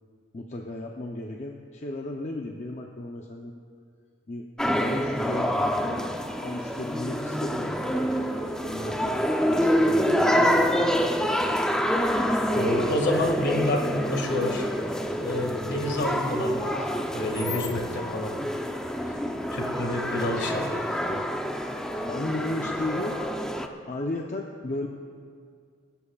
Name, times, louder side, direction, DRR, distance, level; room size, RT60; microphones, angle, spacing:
voice 1, 0.3-3.6 4.3-4.5 4.7-6.1 6.4-10.9 17.3-18.4 21.1-21.3 22.1-23.2 23.9-24.9, left 2 dB, 35° left, 0 dB, 0.7 m, -35 dB
sound 1, 4.6-23.7, equal, 5° left, 0.6 m, -27 dB
voice 2, 12.5-14.7 15.2-18.3 19.1-19.2 19.5-21.0, left 1 dB, 55° left, 2 dB, 2.0 m, -29 dB
23.5 x 12.5 x 2.4 m, 2.1 s
head